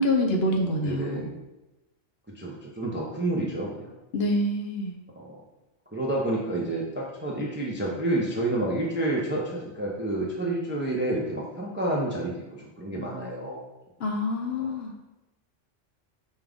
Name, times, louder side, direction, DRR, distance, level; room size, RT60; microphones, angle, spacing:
voice 1, 0.0-1.2 4.1-4.9 14.0-14.9, left 1 dB, 65° left, 2 dB, 0.7 m, -26 dB
voice 2, 0.8-1.3 2.4-3.9 5.2-5.4 5.9-13.6 14.6-14.7, right 1 dB, 15° right, -3 dB, 0.4 m, -29 dB
5.3 x 2.4 x 3.5 m, 1.0 s
omnidirectional pair, 1.3 m